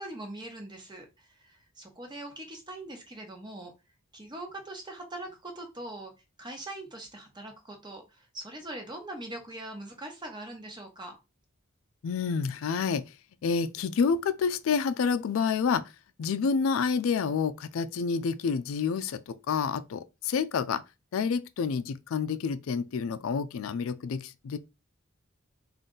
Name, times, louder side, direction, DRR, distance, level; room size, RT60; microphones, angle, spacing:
voice 1, 0.0-3.7 4.1-6.1 6.4-11.2, right 1 dB, 20° right, 1.0 m, -42 dB
voice 2, 12.0-13.0 13.4-15.9 16.2-20.8 21.1-24.6, left 5 dB, 80° left, 0.4 m, -28 dB
3.8 x 2.5 x 3.8 m
head